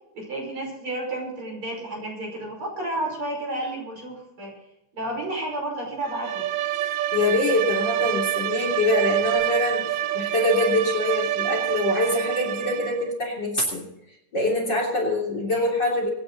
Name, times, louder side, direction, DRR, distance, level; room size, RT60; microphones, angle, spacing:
voice 1, 0.1-4.5 4.9-6.5 15.5-15.7, right 1 dB, 40° right, 0 dB, 6.3 m, -31 dB
Bowed string instrument, 6.0-13.1, right 12 dB, 80° right, 1.3 m, -27 dB
voice 2, 6.8-13.9 14.3-16.1, left 2 dB, 35° left, 1 dB, 3.7 m, -24 dB
25.0 x 11.0 x 4.0 m, 0.86 s
omnidirectional pair, 3.7 m